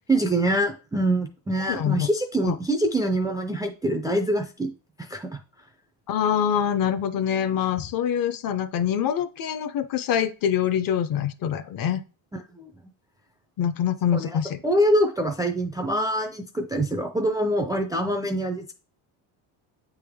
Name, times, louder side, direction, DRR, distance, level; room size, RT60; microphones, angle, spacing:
voice 1, 0.1-4.7 5.0-5.3 12.5-12.7 14.1-14.3 14.6-18.7, right 1 dB, 10° right, 3 dB, 0.3 m, -24 dB
voice 2, 1.7-2.1 2.4-2.6 6.1-12.0 13.6-14.6, left 9 dB, 45° left, 13 dB, 0.6 m, -25 dB
8.2 x 3.5 x 3.5 m, 0.34 s
cardioid pair, 135°, 50 cm